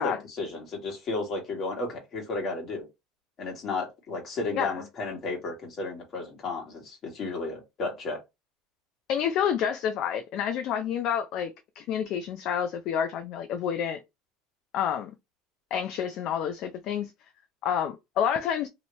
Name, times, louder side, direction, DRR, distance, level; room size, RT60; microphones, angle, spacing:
voice 1, 0.0-2.8 3.4-8.2, left 3 dB, 35° left, 1.7 m, -33 dB
voice 2, 9.1-11.5 11.8-14.0 14.7-15.1 15.7-17.1 17.6-18.7, left 8 dB, 50° left, 0.4 m, -28 dB
2.9 x 2.7 x 3.0 m
cardioid pair, 150°, 0 cm